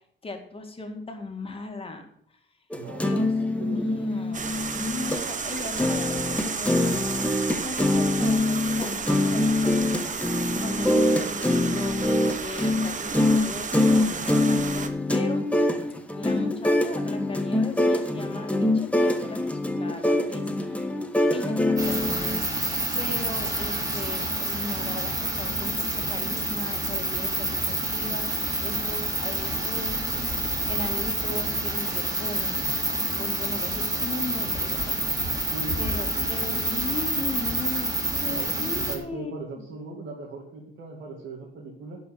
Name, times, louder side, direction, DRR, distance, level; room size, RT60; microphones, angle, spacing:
voice 1, 0.0-2.1 2.9-10.0 10.4-12.1 12.4-15.4 16.2-20.9 21.3-22.4 22.9-30.3 30.7-32.6 33.2-35.0 35.8-39.7, left 3 dB, 30° left, 4 dB, 2.3 m, -38 dB
sound 1, 2.7-5.2 5.6-22.4, left 1 dB, 5° left, 1.3 m, -24 dB
voice 2, 2.7-3.1 3.4-4.0 35.5-36.6 38.3-42.0, right 3 dB, 65° right, -2 dB, 2.5 m, -39 dB
sound 2, 4.3-14.9, right 5 dB, 40° right, 1.1 m, -32 dB
sound 3, 21.8-39.0, right 1 dB, 15° right, 3.3 m, -28 dB
11.0 x 5.6 x 8.4 m, 0.69 s
cardioid pair, 90°, 20 cm